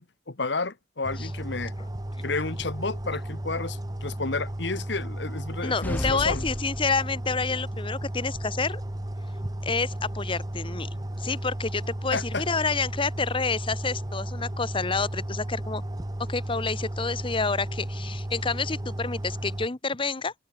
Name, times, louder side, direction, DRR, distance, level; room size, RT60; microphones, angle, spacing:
voice 1, 0.0-1.7 2.2-6.4 12.1-12.4, left 3 dB, 65° left, 1.4 m, -31 dB
sound 1, 1.0-19.7, right 1 dB, 20° right, 1.0 m, -34 dB
voice 2, 5.6-8.8 9.6-15.8 16.3-20.3, left 4 dB, 30° left, 1.0 m, -29 dB
sound 2, 5.8-7.5, left 1 dB, 10° left, 0.6 m, -33 dB
head